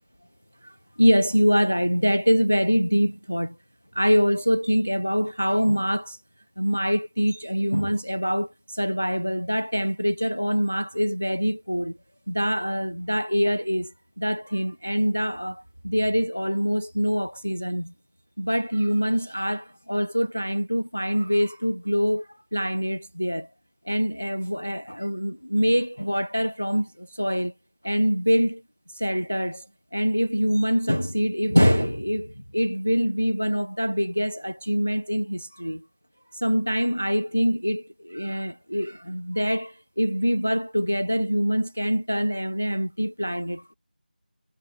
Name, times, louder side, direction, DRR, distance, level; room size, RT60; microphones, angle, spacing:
voice 1, 0.6-3.6 3.9-6.2 6.6-12.0 12.3-17.9 18.4-23.5 23.9-27.5 27.8-28.6 28.9-29.7 29.9-35.8 36.3-43.7, equal, 10° left, 0.4 m, -24 dB
figure-of-eight pair, 180°, 5 cm